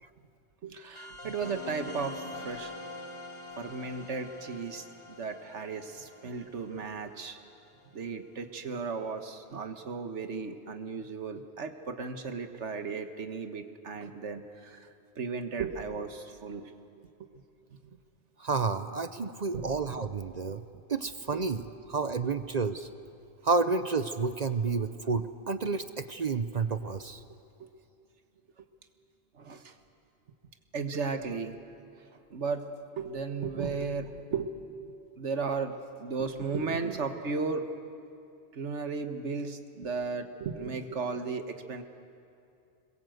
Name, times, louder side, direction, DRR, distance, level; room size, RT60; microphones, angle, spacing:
voice 1, 0.6-2.7 3.6-7.4 7.9-14.9 15.2-16.6 17.2-17.3 19.5-19.7 21.3-21.4 27.6-27.7 29.3-29.7 30.7-31.6 32.3-32.7 33.0-37.6 38.5-41.8, right 4 dB, 80° right, 7 dB, 1.6 m, -35 dB
sound 1, 1.0-8.1, left 3 dB, 25° left, 1.6 m, -45 dB
voice 2, 18.4-20.6 20.9-22.9 23.4-27.2, right 4 dB, 45° right, 11 dB, 0.7 m, -30 dB
26.5 x 21.5 x 7.9 m, 2.6 s
omnidirectional pair, 1.2 m